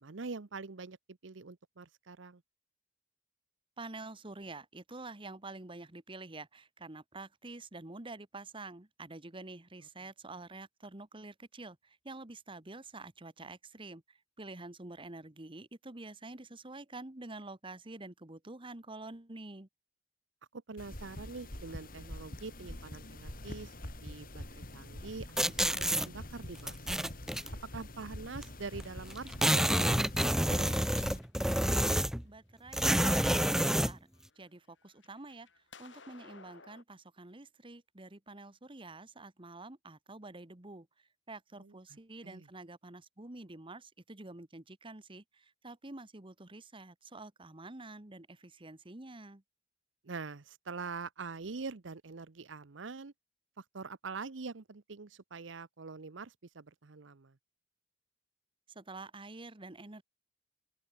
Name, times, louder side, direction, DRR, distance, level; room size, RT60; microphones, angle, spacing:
voice 1, 0.0-2.4 20.5-23.7 24.0-26.7 27.7-30.8 41.6-41.8 42.2-42.5 50.0-53.1 53.6-57.4, right 4 dB, 75° right, 0.8 m, -44 dB
voice 2, 3.8-19.7 32.2-34.0 34.4-40.9 41.3-49.4 58.7-60.0, right 2 dB, 25° right, 1.5 m, -48 dB
sound 1, 20.8-31.2, left 1 dB, 50° left, 4.4 m, -45 dB
sound 2, 25.4-26.1 26.7-27.5 28.4-28.5 28.8-28.9 29.1-32.3 32.7-34.0, right 1 dB, 5° right, 0.6 m, -28 dB
sound 3, 30.9-32.3 32.9-33.7 34.1-36.8, left 5 dB, 70° left, 7.6 m, -57 dB
open air
head